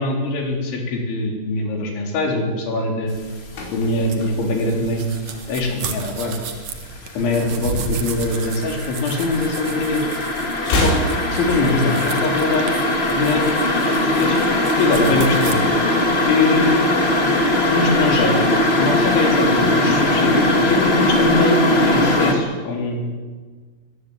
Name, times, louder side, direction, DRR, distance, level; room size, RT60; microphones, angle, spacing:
voice 1, 0.0-3.1 3.7-5.1 5.5-6.4 7.2-10.1 10.7-10.9 11.3-12.7 13.1-13.5 13.9-15.6 16.3-16.8 17.7-18.5 18.8-23.0, left 2 dB, 75° left, 2 dB, 6.3 m, -22 dB
sound 1, 3.3-3.7 4.0-5.6 5.9-22.3, left 1 dB, 40° left, 0.8 m, -20 dB
sound 2, 3.5-5.8 6.1-6.4 6.7-8.1 8.4-9.8 10.0-12.1 12.4-12.5, left 1 dB, 90° left, 7.5 m, -28 dB
sound 3, 4.1-15.5, right 6 dB, 55° right, 2.0 m, -34 dB
21.5 x 17.5 x 9.7 m, 1.4 s
omnidirectional pair, 5.5 m